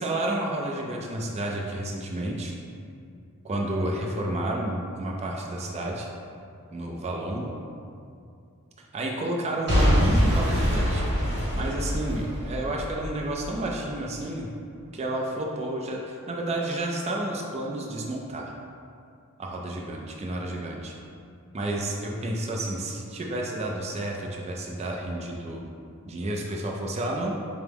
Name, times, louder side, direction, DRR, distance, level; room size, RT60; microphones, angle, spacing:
voice 1, 0.0-2.5 3.4-6.1 6.7-7.5 8.9-14.5 14.9-18.5 19.4-20.9 21.5-25.7 26.1-27.4, right 1 dB, 30° right, 0 dB, 0.4 m, -31 dB
Boom / Shatter / Crushing, 9.7-13.7 14.2-14.3, equal, 55° right, 1.1 m, -24 dB
4.5 x 2.0 x 3.4 m, 2.4 s
head